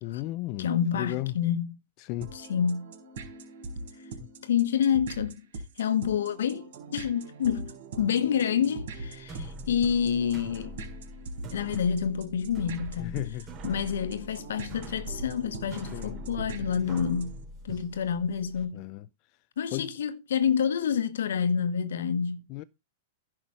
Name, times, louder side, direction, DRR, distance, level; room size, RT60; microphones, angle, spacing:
voice 1, 0.0-0.7 0.9-1.4 2.0-2.3 4.2-4.3 13.0-13.5 15.9-16.2 18.7-19.1 19.7-19.9 22.5-22.6, left 17 dB, 45° left, 0.5 m, -34 dB
voice 2, 0.6-1.8 2.3-2.9 4.4-5.4 5.8-10.8 11.5-13.2 13.6-17.4 17.6-18.8 19.6-22.4, left 8 dB, 80° left, 1.2 m, -28 dB
sound 1, 2.2-17.4, right 3 dB, 70° right, 4.4 m, -42 dB
sound 2, 9.1-18.6, equal, 30° right, 3.1 m, -44 dB
11.0 x 6.0 x 4.8 m
hypercardioid pair, 125°, 0 cm